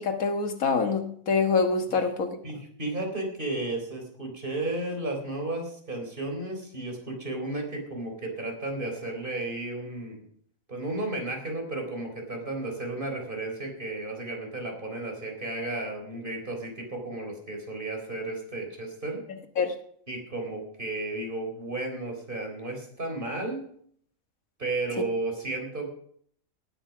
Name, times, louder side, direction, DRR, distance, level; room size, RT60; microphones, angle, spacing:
voice 1, 0.0-2.4 19.6-19.8, left 4 dB, 85° left, 7 dB, 1.8 m, -25 dB
voice 2, 2.4-10.2 10.7-19.2 20.1-23.7 24.6-25.9, right 2 dB, 40° right, 2 dB, 4.0 m, -33 dB
18.0 x 9.1 x 6.0 m, 0.65 s
omnidirectional pair, 1.4 m